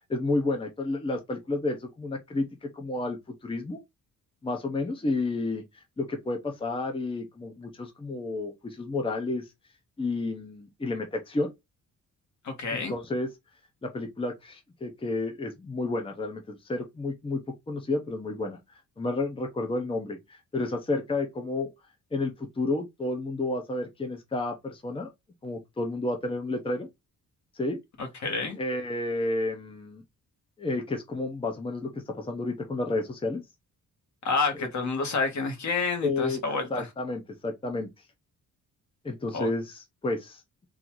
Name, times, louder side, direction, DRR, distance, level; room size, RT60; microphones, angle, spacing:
voice 1, 0.1-3.8 4.4-5.6 6.0-9.4 10.0-11.5 12.7-13.3 13.8-17.4 17.7-18.6 19.0-21.7 22.1-25.1 25.4-26.9 27.5-27.8 28.6-30.0 30.6-33.4 36.0-36.4 36.7-37.9 39.0-40.7, left 2 dB, 15° left, 0.8 m, -31 dB
voice 2, 12.4-12.9 28.0-28.6 34.2-36.9 39.3-39.5, left 4 dB, 60° left, 1.6 m, -29 dB
4.0 x 2.7 x 4.6 m
wide cardioid pair, 160°, 33 cm